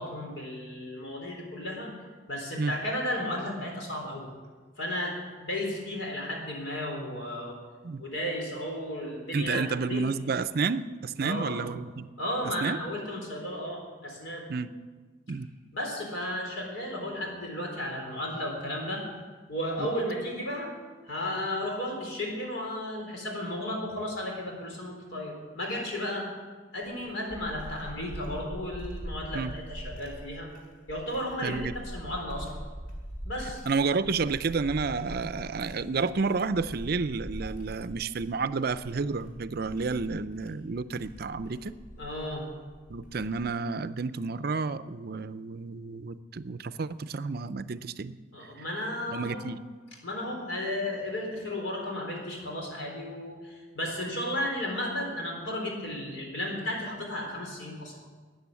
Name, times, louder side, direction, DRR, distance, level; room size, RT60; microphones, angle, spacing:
voice 1, 0.0-1.9 2.3-4.3 4.8-7.6 8.0-10.0 11.2-11.6 12.2-14.5 15.7-19.0 19.5-20.7 21.0-26.3 26.7-30.5 30.9-32.6 33.3-33.6 41.5-41.6 42.0-42.5 48.3-49.4 50.0-58.0, left 1 dB, 70° left, 0 dB, 3.9 m, -34 dB
voice 2, 9.3-12.1 12.6-12.8 14.5-14.7 15.3-15.5 19.8-19.9 29.3-29.5 31.4-31.7 33.7-41.8 42.9-48.2 49.1-49.6, right 4 dB, 50° right, 14 dB, 0.5 m, -30 dB
sound 1, 26.8-43.7, equal, 50° left, 3.7 m, -43 dB
13.5 x 9.3 x 8.3 m, 1.4 s
head